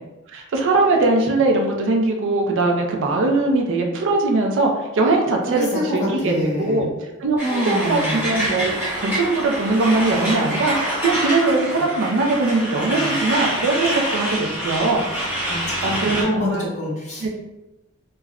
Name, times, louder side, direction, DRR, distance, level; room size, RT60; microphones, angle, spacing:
voice 1, 0.3-6.9 7.2-15.0 15.8-16.7 17.2-17.3, right 3 dB, 60° right, 1 dB, 0.4 m, -21 dB
voice 2, 5.5-6.0 6.2-6.9 7.4-8.2 12.9-13.1 15.5-17.3, equal, 35° left, -4 dB, 0.8 m, -26 dB
Truck, 7.4-16.2, right 1 dB, 10° right, 0.9 m, -26 dB
3.4 x 2.1 x 2.3 m, 1.0 s
head